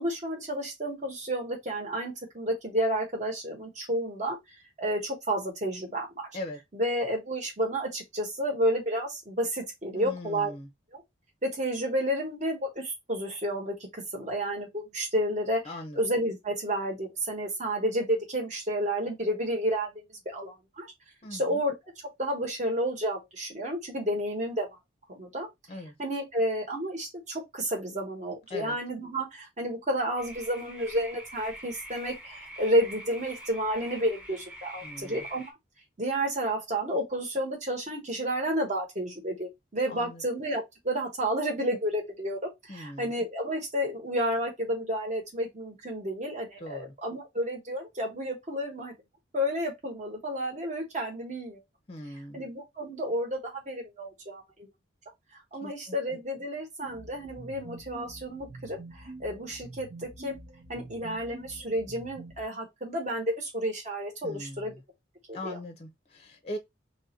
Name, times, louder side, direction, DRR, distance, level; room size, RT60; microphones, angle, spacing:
voice 1, 0.0-4.4 4.8-6.3 6.7-10.5 10.9-11.0 11.4-15.6 16.0-19.9 20.3-20.9 21.3-21.7 22.2-24.7 25.1-25.5 26.0-35.4 36.0-42.4 42.7-48.9 49.3-51.6 52.3-54.7 55.5-60.4 60.7-64.7 65.3-65.6, equal, 40° right, 1.2 m, -31 dB
voice 2, 10.0-10.7 15.6-16.0 21.2-21.7 25.7-25.9 28.5-28.8 34.8-35.3 39.9-40.2 42.7-43.1 46.6-46.9 51.9-52.5 55.6-56.0 64.2-64.8 65.3-66.6, left 1 dB, 30° left, 0.5 m, -40 dB
sound 1, 30.2-35.5, right 1 dB, 5° right, 0.7 m, -45 dB
sound 2, 56.8-62.4, right 2 dB, 70° right, 1.0 m, -46 dB
3.0 x 2.5 x 4.2 m
head